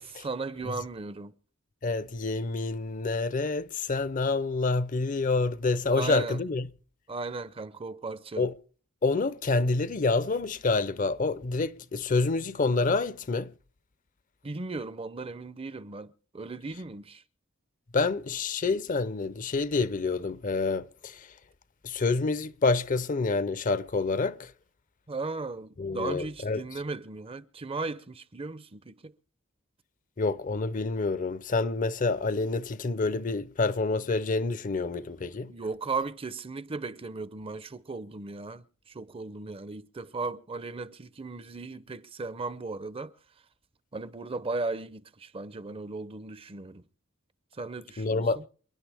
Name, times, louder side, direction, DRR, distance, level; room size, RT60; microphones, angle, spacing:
voice 1, 0.0-1.3 5.9-6.4 7.1-8.5 14.4-17.2 25.1-29.1 35.5-43.1 43.9-46.8 47.5-48.4, right 3 dB, 25° right, 0.6 m, -36 dB
voice 2, 1.8-6.6 8.4-8.5 9.0-13.5 17.9-21.3 21.8-24.5 25.8-26.6 30.2-35.5 48.0-48.4, left 3 dB, 40° left, 0.6 m, -27 dB
28.5 x 10.5 x 3.4 m
head